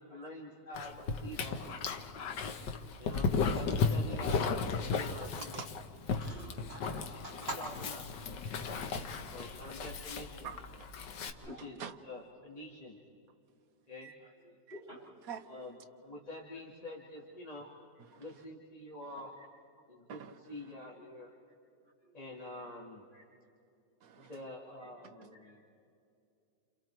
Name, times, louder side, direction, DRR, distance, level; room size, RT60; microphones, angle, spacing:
voice 1, 0.0-1.6 2.5-5.6 7.6-8.1 9.3-10.5 11.4-13.0 13.9-14.5 15.4-17.7 18.1-19.3 19.9-21.3 22.0-23.1 24.1-25.6, left 1 dB, 20° left, 2.2 m, -47 dB
Dog, 0.7-11.3, left 5 dB, 75° left, 1.8 m, -35 dB
voice 2, 6.1-7.6 11.2-11.6 14.7-15.0, right 1 dB, 30° right, 8.1 m, -45 dB
voice 3, 10.4-10.9 11.6-12.0 14.0-14.1 14.7-14.8 15.2-15.5 18.1-18.2 20.1-20.4 24.0-24.3, right 8 dB, 55° right, 1.3 m, -46 dB
29.5 x 27.5 x 4.6 m
omnidirectional pair, 1.9 m